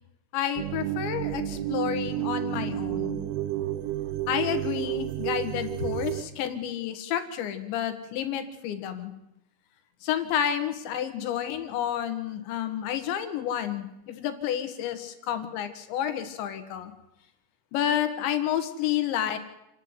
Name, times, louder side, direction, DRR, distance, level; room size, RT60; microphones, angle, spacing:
voice 1, 0.3-3.2 4.3-9.1 10.0-16.9 17.7-19.4, left 10 dB, 80° left, 9 dB, 3.9 m, -30 dB
sound 1, 0.6-6.2, right 13 dB, 75° right, 2.4 m, -31 dB
28.0 x 9.7 x 9.7 m, 0.88 s
omnidirectional pair, 5.1 m